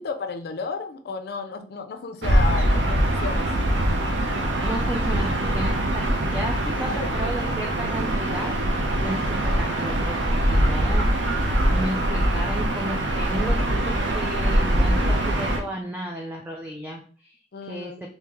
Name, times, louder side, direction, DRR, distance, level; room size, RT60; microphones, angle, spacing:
voice 1, 0.0-3.7 6.9-7.1 17.5-18.0, left 5 dB, 60° left, 8 dB, 0.4 m, -33 dB
Gull seagull / Ocean, 2.2-15.6, right 1 dB, 85° right, 0.6 m, -23 dB
voice 2, 4.6-8.5 9.0-11.5 11.7-17.4 17.6-17.9, right 1 dB, 10° right, 0 dB, 0.4 m, -33 dB
3.5 x 2.7 x 3.0 m, 0.42 s
head